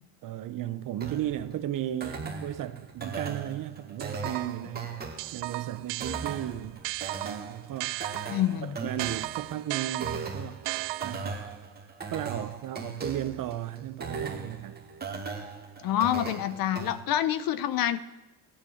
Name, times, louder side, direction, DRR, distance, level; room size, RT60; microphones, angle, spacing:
voice 1, 0.2-6.8 7.2-8.3 8.8-10.6 11.0-11.5 12.1-14.8, right 12 dB, 45° right, 0.9 m, -35 dB
sound 1, 1.0-17.0, right 4 dB, 20° right, 1.9 m, -39 dB
sound 2, 4.0-4.7 5.2-8.5 9.0-11.5, right 20 dB, 65° right, 0.5 m, -35 dB
voice 2, 8.3-8.8 15.8-18.0, left 11 dB, 50° left, 0.9 m, -27 dB
16.0 x 10.0 x 7.2 m
cardioid pair, 125°, 44 cm